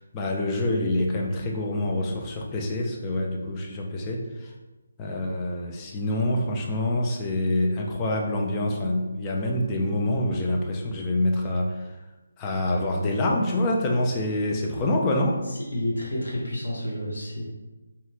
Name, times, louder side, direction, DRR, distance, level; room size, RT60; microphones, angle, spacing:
voice 1, 0.0-4.5 5.0-12.0 12.4-15.4, left 1 dB, 20° left, -1 dB, 0.4 m, -26 dB
voice 2, 15.7-17.4, left 1 dB, 60° left, -4 dB, 1.0 m, -30 dB
2.8 x 2.3 x 3.2 m, 1.1 s
figure-of-eight pair, 150°, 0 cm